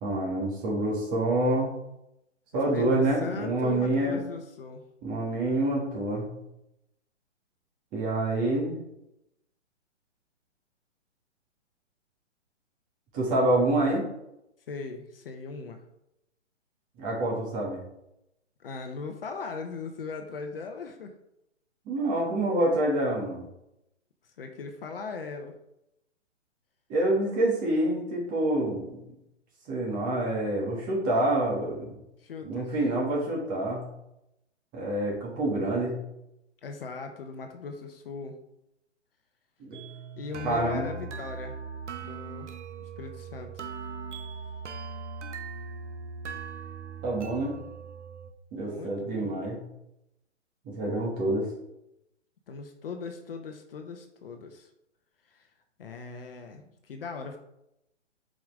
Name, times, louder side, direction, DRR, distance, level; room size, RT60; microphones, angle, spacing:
voice 1, 0.0-1.7 2.5-4.2 5.0-6.3 7.9-8.7 13.1-14.0 17.0-17.8 21.9-23.4 26.9-28.9 29.7-32.0 32.4-33.9 34.7-35.9 40.4-40.9 47.0-47.5 48.5-49.6 50.6-51.5, right 1 dB, 20° right, -3 dB, 2.6 m, -27 dB
voice 2, 2.5-4.8 14.7-15.8 18.6-21.1 24.4-25.5 32.2-32.7 36.6-38.3 40.2-41.5 42.0-42.5 43.0-43.7 48.6-49.5 52.5-54.7 55.3-55.5 55.8-57.4, left 4 dB, 50° left, 5 dB, 1.0 m, -39 dB
sound 1, 39.7-48.3, right 5 dB, 70° right, 0.9 m, -40 dB
7.4 x 5.2 x 3.7 m, 0.84 s
figure-of-eight pair, 135°, 36 cm